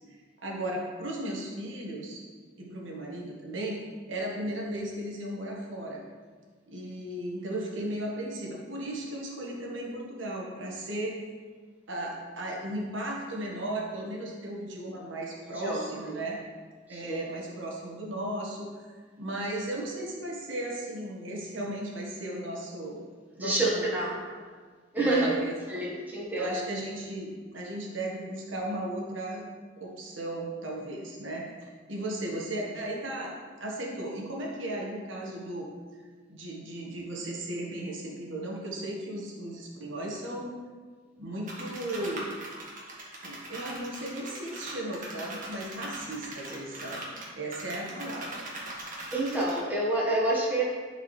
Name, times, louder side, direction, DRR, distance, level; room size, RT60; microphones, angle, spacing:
voice 1, 0.4-2.2 2.6-3.8 4.1-6.0 6.7-11.2 11.9-16.4 16.9-18.9 19.2-23.0 23.4-23.9 24.9-25.5 26.3-29.4 29.8-33.3 33.6-35.7 36.3-40.5 41.2-42.3 43.2-47.0 47.4-48.4, right 1 dB, 75° right, -2 dB, 1.4 m, -35 dB
voice 2, 15.4-16.2 16.9-17.2 23.4-24.2 24.9-25.4 25.7-26.6 49.1-50.6, right 2 dB, 10° right, -5 dB, 1.3 m, -28 dB
sound 1, 41.5-49.6, right 2 dB, 45° right, 1.6 m, -40 dB
11.5 x 4.7 x 3.2 m, 1.5 s
head